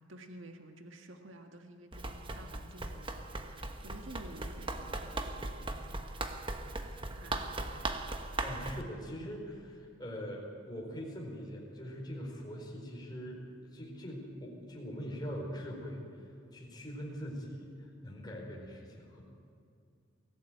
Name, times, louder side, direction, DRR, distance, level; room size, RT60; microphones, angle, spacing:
voice 1, 0.0-7.8, right 1 dB, 65° right, 4 dB, 1.7 m, -52 dB
Run, 1.9-8.8, right 2 dB, 25° right, 1.3 m, -39 dB
voice 2, 8.4-19.2, equal, 20° left, -2 dB, 4.7 m, -42 dB
24.0 x 16.5 x 9.2 m, 2.4 s
head